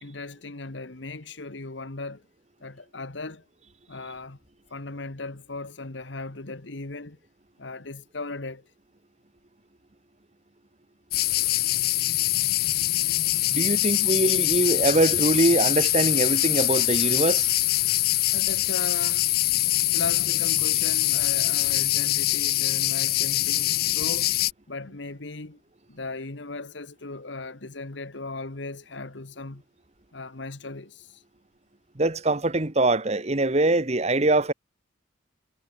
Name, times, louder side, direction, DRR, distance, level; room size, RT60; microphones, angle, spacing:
voice 1, 0.0-2.2 2.6-3.4 3.9-4.4 4.7-7.2 7.6-8.6 18.3-19.3 19.9-24.3 24.7-25.6 25.9-29.6 30.1-31.2, left 3 dB, 75° left, 1.6 m, -37 dB
sound 1, 11.1-24.5, left 17 dB, 50° left, 0.4 m, -23 dB
voice 2, 13.5-17.5 32.0-34.5, right 2 dB, 35° right, 1.3 m, -23 dB
head